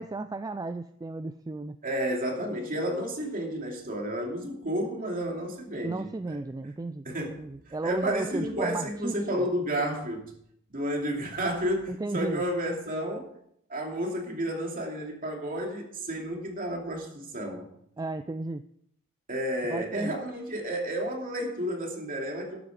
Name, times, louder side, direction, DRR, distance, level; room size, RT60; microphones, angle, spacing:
voice 1, 0.0-1.8 5.8-7.1 7.4-9.5 11.9-12.4 18.0-18.6 19.7-20.2, right 2 dB, 15° right, 10 dB, 0.3 m, -34 dB
voice 2, 1.8-6.4 7.0-10.3 10.7-13.3 13.7-17.7 19.3-22.6, equal, 40° right, 1 dB, 2.7 m, -31 dB
12.0 x 9.0 x 4.9 m, 0.71 s
head